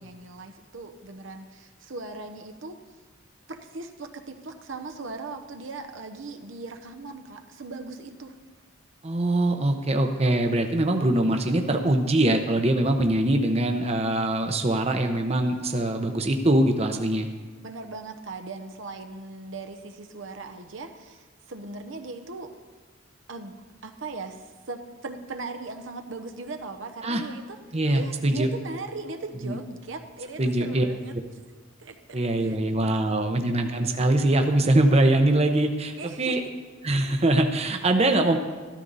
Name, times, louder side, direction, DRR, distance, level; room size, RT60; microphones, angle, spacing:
voice 1, 0.0-2.8 3.5-8.3 17.6-22.5 23.3-23.5 23.8-31.1 31.8-33.4 36.0-36.4, right 3 dB, 75° right, 6 dB, 1.0 m, -39 dB
voice 2, 9.0-17.3 27.0-27.2 27.7-28.5 29.4-29.6 30.4-30.8 32.1-36.4 36.8-38.4, right 1 dB, 30° right, 5 dB, 0.8 m, -23 dB
13.5 x 13.0 x 4.1 m, 1.4 s
head